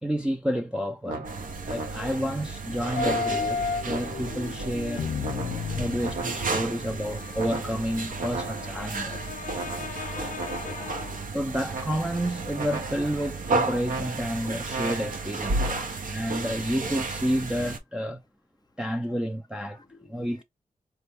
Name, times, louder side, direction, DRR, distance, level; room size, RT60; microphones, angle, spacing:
voice 1, 0.0-1.3 1.6-5.1 5.8-9.3 11.3-18.2 18.8-19.8 20.1-20.4, equal, 5° right, 0.4 m, -30 dB
sound 1, 1.1-2.4 3.0-4.5 5.2-6.7 7.4-9.0 9.5-11.0 11.7-12.3 12.5-13.3 13.8-16.2 16.9-17.3, right 3 dB, 90° right, 1.4 m, -37 dB
Kitchen noises microwave, 1.2-17.8, right 3 dB, 70° right, 0.8 m, -33 dB
sound 2, 3.0-11.2 12.6-12.7, left 6 dB, 70° left, 0.4 m, -34 dB
voice 2, 10.0-11.2 15.8-15.9 19.8-20.3, left 3 dB, 30° left, 0.7 m, -46 dB
4.5 x 2.3 x 3.3 m
wide cardioid pair, 105°, 14 cm